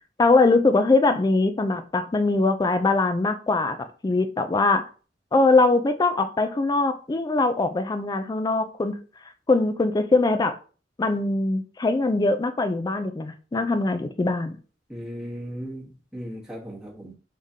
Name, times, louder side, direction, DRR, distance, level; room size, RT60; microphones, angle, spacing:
voice 1, 0.2-3.8 4.0-4.9 5.3-9.0 9.5-10.6 11.0-14.6, left 3 dB, 20° left, 8 dB, 0.3 m, -22 dB
voice 2, 14.9-17.1, equal, 5° right, -5 dB, 1.1 m, -37 dB
4.8 x 3.6 x 2.7 m, 0.37 s
head